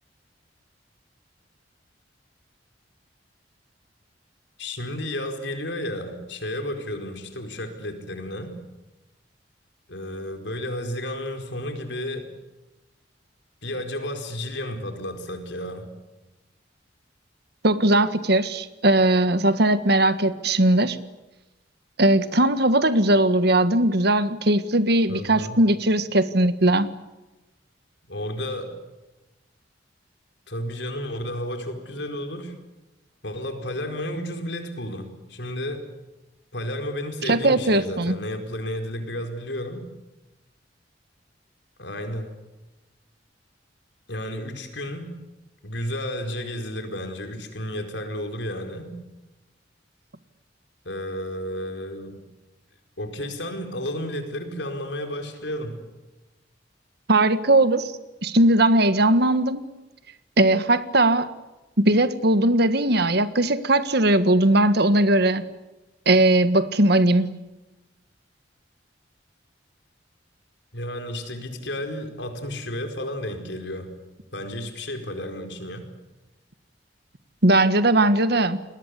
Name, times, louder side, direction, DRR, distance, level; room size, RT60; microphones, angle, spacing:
voice 1, 4.6-8.6 9.9-12.3 13.6-15.9 25.1-25.6 28.1-28.8 30.5-32.6 33.2-35.9 36.5-39.9 41.8-42.4 44.1-45.1 45.6-49.0 50.8-52.3 53.0-55.9 70.7-73.9 74.3-75.9, left 1 dB, 75° left, 6 dB, 4.7 m, -32 dB
voice 2, 17.6-21.0 22.0-26.9 37.2-38.2 57.1-57.9 58.2-59.7 60.4-61.3 61.8-65.4 66.0-67.3 77.4-78.6, right 1 dB, 60° right, 12 dB, 1.6 m, -19 dB
29.5 x 22.0 x 8.4 m, 1.0 s
head